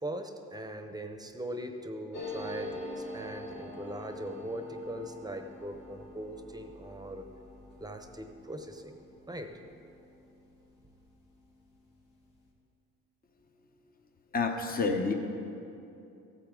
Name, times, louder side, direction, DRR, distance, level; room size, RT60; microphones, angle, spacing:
voice 1, 0.0-7.2 7.8-9.0 9.3-9.6, right 1 dB, 15° right, 6 dB, 0.8 m, -40 dB
sound 1, 2.1-11.3 11.6-11.7 11.9-12.5, left 2 dB, 80° left, 1.8 m, -45 dB
voice 2, 14.3-15.1, left 4 dB, 30° left, 4 dB, 0.9 m, -28 dB
14.5 x 8.3 x 3.8 m, 2.8 s
cardioid pair, 90°, 30 cm